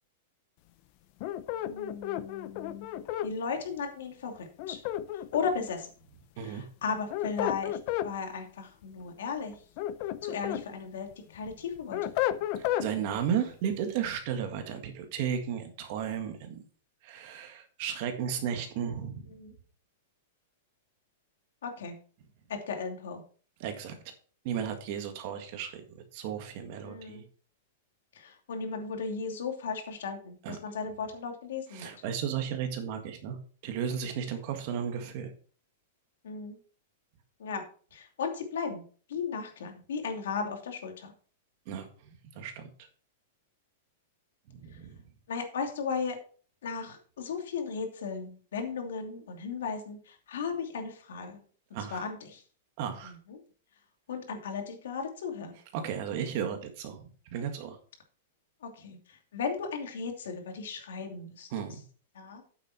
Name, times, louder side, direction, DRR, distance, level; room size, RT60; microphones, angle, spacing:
sound 1, 1.2-3.3 4.6-5.7 6.9-8.1 9.5-10.6 11.1-12.9, left 12 dB, 35° left, 0.5 m, -32 dB
voice 1, 1.6-4.8 5.1-5.9 6.4-7.8 8.0-9.5 10.2-12.0 19.3-19.5 21.6-21.9 22.5-23.2 26.8-27.2 28.1-31.9 36.2-36.6 37.4-37.6 37.9-38.8 39.1-41.1 45.3-46.2 46.6-51.4 51.9-52.4 53.0-53.4 54.1-55.6 58.6-59.0 59.3-61.5 62.1-62.4, left 5 dB, 80° left, 4 dB, 2.7 m, -36 dB
voice 2, 12.6-16.6 17.0-19.3 23.6-24.0 24.4-27.2 30.4-30.6 31.7-35.3 41.7-42.7 44.5-45.0 51.7-52.0 52.8-53.2 55.7-57.8 61.5-61.8, right 8 dB, 35° right, 6 dB, 1.8 m, -34 dB
9.0 x 7.5 x 4.4 m, 0.42 s
supercardioid pair, 175°, 0 cm